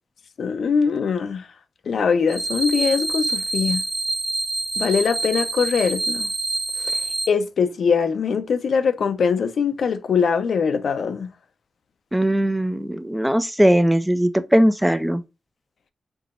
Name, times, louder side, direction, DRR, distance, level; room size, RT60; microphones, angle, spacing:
voice 1, 0.4-1.5 1.9-3.8 4.8-6.3 6.8-7.0 7.3-11.3, left 6 dB, 80° left, 0.6 m, -22 dB
sound 1, 2.3-7.3, right 2 dB, 50° right, 1.4 m, -26 dB
voice 2, 12.1-15.2, equal, 5° right, 0.4 m, -19 dB
4.7 x 3.9 x 2.5 m
wide cardioid pair, 145°, 0 cm